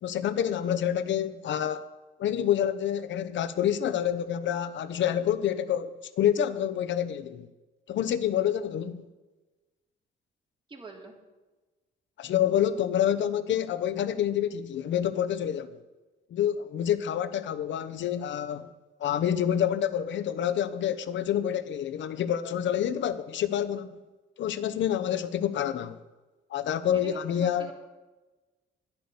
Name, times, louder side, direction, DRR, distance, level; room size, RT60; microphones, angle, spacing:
voice 1, 0.0-1.9 2.2-7.5 7.9-9.0 12.2-15.8 16.3-18.7 19.0-24.0 24.4-26.0 26.5-27.7, left 10 dB, 70° left, 0.9 m, -28 dB
voice 2, 10.7-11.1 26.9-27.7, right 2 dB, 25° right, 2.9 m, -44 dB
10.5 x 10.0 x 6.8 m
cardioid pair, 90°, 20 cm